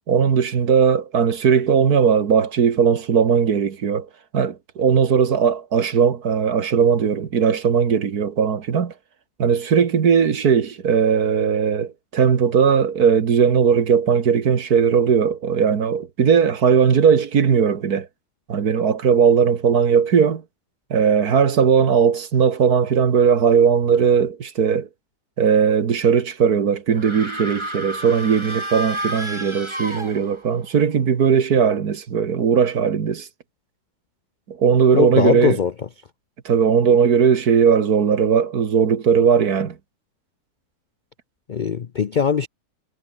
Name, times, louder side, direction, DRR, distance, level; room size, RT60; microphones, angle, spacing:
voice 1, 0.1-4.1 4.3-8.9 9.4-18.1 18.5-20.4 20.9-24.9 25.4-33.3 34.5-35.6 36.5-39.8, right 7 dB, 75° right, 2.1 m, -18 dB
sound 1, 26.9-30.6, right 1 dB, 15° right, 5.0 m, -30 dB
voice 2, 34.9-35.7 41.5-42.5, left 6 dB, 60° left, 0.5 m, -20 dB
omnidirectional pair, 1.7 m